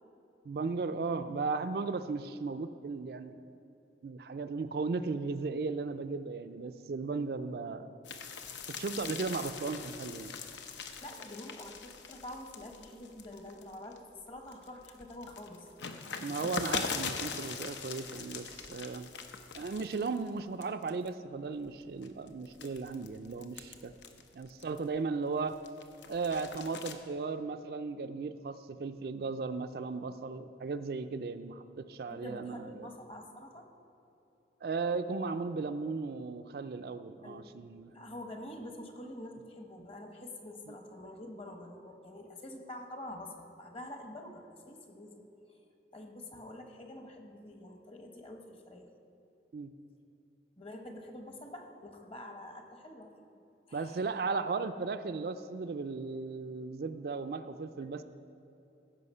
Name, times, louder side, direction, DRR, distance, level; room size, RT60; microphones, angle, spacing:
voice 1, 0.4-3.4 4.0-7.9 8.7-10.3 16.2-19.1 19.5-23.9 24.3-25.6 26.1-32.9 34.6-37.9 49.5-49.7 53.7-58.0, right 4 dB, 55° right, 10 dB, 0.4 m, -36 dB
sound 1, 8.0-14.0 14.4-20.3 20.6-21.1 21.7-25.0 25.4-26.9, left 5 dB, 85° left, 0.8 m, -41 dB
voice 2, 11.0-15.7 32.1-33.7 37.2-37.5 37.9-45.2 45.9-48.9 50.6-53.1 53.7-54.1, left 1 dB, 30° left, 4 dB, 1.0 m, -46 dB
15.5 x 5.7 x 5.5 m, 3.0 s
head